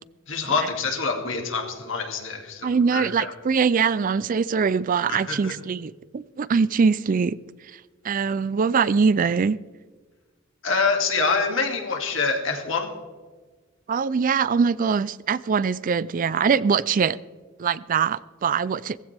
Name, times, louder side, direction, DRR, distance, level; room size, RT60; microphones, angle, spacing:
voice 1, 0.3-3.3 5.1-5.5 10.6-12.9, left 4 dB, 70° left, 2.4 m, -26 dB
voice 2, 2.6-7.4 7.7-9.6 13.9-17.2 17.6-19.0, right 5 dB, 40° right, 0.4 m, -23 dB
18.0 x 15.5 x 3.4 m
head